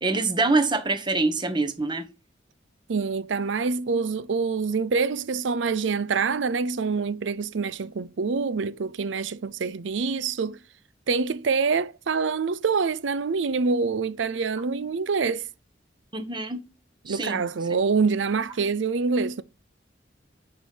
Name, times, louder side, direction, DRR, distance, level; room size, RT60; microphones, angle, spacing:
voice 1, 0.0-2.0 16.1-16.6 17.1-17.4, right 3 dB, 25° right, 1.1 m, -25 dB
voice 2, 2.9-10.6 11.1-15.4 17.1-19.4, right 5 dB, 80° right, 0.5 m, -26 dB
7.8 x 5.4 x 3.9 m
head